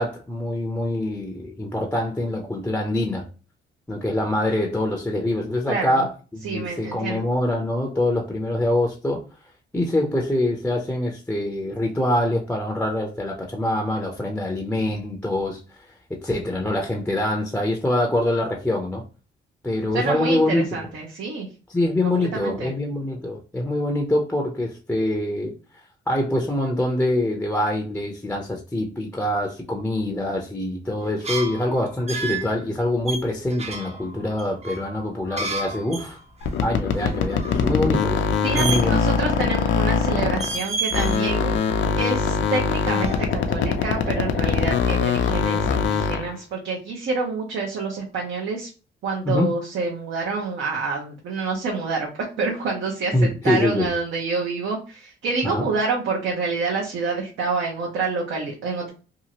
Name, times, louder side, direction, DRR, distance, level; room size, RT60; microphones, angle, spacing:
voice 1, 0.0-3.3 3.9-6.1 6.4-9.2 9.7-19.0 19.6-20.9 21.7-25.5 26.1-36.2 36.6-38.2 38.6-39.0 49.2-49.5 53.1-53.9 55.4-55.7, left 1 dB, 10° left, 0.5 m, -24 dB
voice 2, 5.7-6.1 6.4-7.2 19.9-21.5 22.0-22.7 38.4-41.6 42.0-48.7 49.0-52.1 52.4-58.9, right 4 dB, 75° right, 0.8 m, -27 dB
sound 1, 31.1-32.5 33.1-36.1 36.4-36.5 36.9-37.7 38.5-39.2 39.5-40.0 40.3-41.2 41.6-42.6 42.9-43.7, right 3 dB, 30° right, 0.6 m, -31 dB
sound 2, 36.4-40.6 40.9-46.3, left 6 dB, 70° left, 0.5 m, -22 dB
2.8 x 2.4 x 2.8 m
cardioid pair, 90°, 20 cm